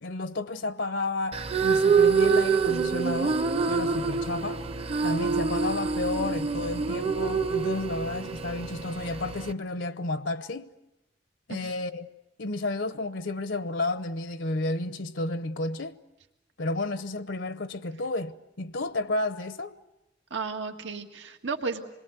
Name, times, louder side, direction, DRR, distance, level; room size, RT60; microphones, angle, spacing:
voice 1, 0.0-4.6 5.0-10.7 11.5-12.1 12.4-15.9 16.6-19.7, left 2 dB, 80° left, 0.9 m, -32 dB
sound 1, 1.3-9.5, right 5 dB, 35° right, 0.8 m, -26 dB
voice 2, 20.3-21.8, right 4 dB, 90° right, 1.8 m, -33 dB
27.0 x 21.5 x 8.2 m
head